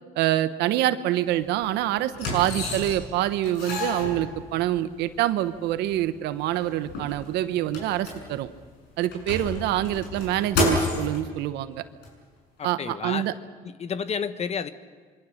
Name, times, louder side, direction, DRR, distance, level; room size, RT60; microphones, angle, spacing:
voice 1, 0.2-8.5 9.0-11.8 12.6-13.3, right 13 dB, 90° right, 12 dB, 1.0 m, -26 dB
sound 1, 1.3-1.4 2.1-3.1 3.4-4.8 5.5-5.6 5.9-6.0 6.4-8.6 9.0-11.2 12.0-12.1, left 2 dB, 80° left, 7.3 m, -30 dB
voice 2, 12.6-13.3 13.6-14.7, left 6 dB, 40° left, 12 dB, 1.1 m, -31 dB
26.0 x 23.5 x 6.6 m, 1.5 s
cardioid pair, 110°, 17 cm